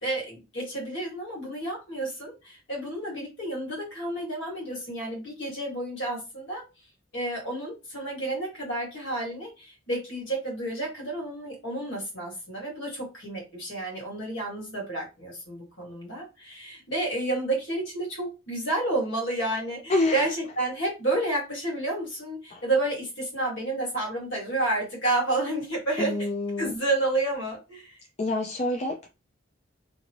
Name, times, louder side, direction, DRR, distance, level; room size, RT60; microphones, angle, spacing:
voice 1, 0.0-6.6 7.1-26.2 26.6-28.0, right 2 dB, 75° left, 1.8 m, -30 dB
voice 2, 19.9-20.3 22.5-22.6 26.0-26.7 28.2-29.1, left 2 dB, 35° left, 0.4 m, -27 dB
2.9 x 2.6 x 2.9 m
head